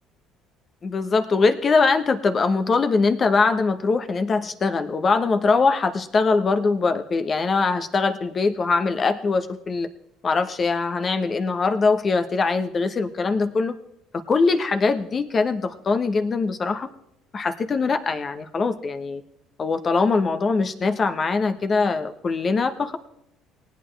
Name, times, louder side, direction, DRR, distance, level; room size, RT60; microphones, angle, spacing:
voice 1, 0.8-9.9 10.2-13.7 14.3-16.9 17.3-19.2 19.6-23.0, left 4 dB, 40° left, 8 dB, 1.1 m, -22 dB
19.0 x 9.1 x 3.4 m, 0.79 s
hypercardioid pair, 60°, 0 cm